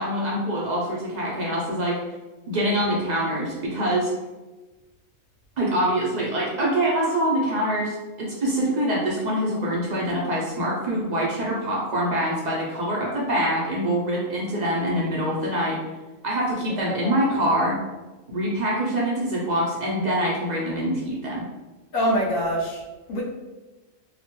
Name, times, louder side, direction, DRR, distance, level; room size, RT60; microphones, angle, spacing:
voice 1, 0.0-2.0 2.5-4.1 5.6-15.8 16.2-17.8 18.3-21.5, right 1 dB, 55° right, -4 dB, 0.5 m, -25 dB
voice 2, 16.8-17.2 21.9-22.8 23.1-23.2, equal, 75° left, -3 dB, 1.1 m, -25 dB
2.9 x 2.1 x 2.9 m, 1.2 s
omnidirectional pair, 1.4 m